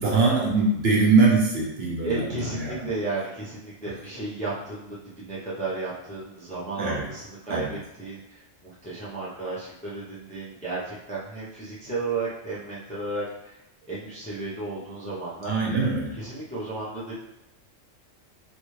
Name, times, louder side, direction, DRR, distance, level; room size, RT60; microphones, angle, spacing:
voice 1, 0.0-2.8 6.8-7.0 7.5-7.7 15.5-16.1, right 3 dB, 60° right, -3 dB, 0.9 m, -22 dB
voice 2, 2.0-13.6 13.9-15.8 16.1-17.1, right 3 dB, 10° left, -8 dB, 0.5 m, -33 dB
3.2 x 2.5 x 3.1 m, 0.86 s
omnidirectional pair, 1.3 m